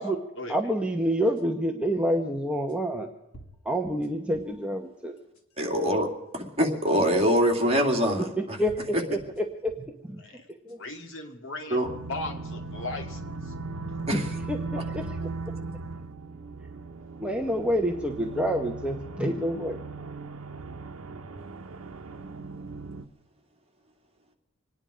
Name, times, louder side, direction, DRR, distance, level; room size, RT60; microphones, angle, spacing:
voice 1, 0.5-3.1 3.6-5.2 8.4-10.4 10.7-10.8 14.1-14.2 14.5-14.6 14.9-15.2 17.2-19.8, equal, 5° right, 2 dB, 0.9 m, -28 dB
sound 1, 1.4-1.5 2.7-2.8 3.3-4.6 5.2-5.7 6.7-6.8 8.0-8.1 8.7-10.0 10.5-11.1, right 1 dB, 80° left, 2.0 m, -52 dB
voice 2, 5.6-8.6 8.9-9.0 11.7-11.9 14.1-14.3, equal, 30° right, 1 dB, 2.6 m, -24 dB
voice 3, 10.8-13.2 14.0-14.2, left 2 dB, 65° left, 4 dB, 2.3 m, -37 dB
sound 2, 11.8-23.1, right 3 dB, 80° right, 0.9 m, -38 dB
26.5 x 10.0 x 5.0 m, 0.94 s
head